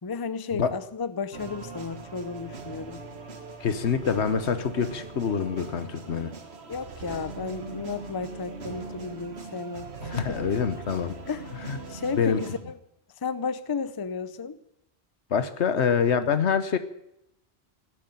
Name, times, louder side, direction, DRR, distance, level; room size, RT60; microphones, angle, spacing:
voice 1, 0.0-3.0 6.7-10.4 11.3-11.5 11.9-12.8 13.2-14.6, left 5 dB, 25° left, 14 dB, 0.6 m, -33 dB
sound 1, 1.3-12.6, right 4 dB, 65° right, 1.7 m, -40 dB
voice 2, 3.6-6.3 10.1-11.2 11.7-11.8 12.2-12.4 15.3-16.8, left 6 dB, 75° left, 11 dB, 1.3 m, -25 dB
17.5 x 8.5 x 9.2 m, 0.81 s
omnidirectional pair, 1.1 m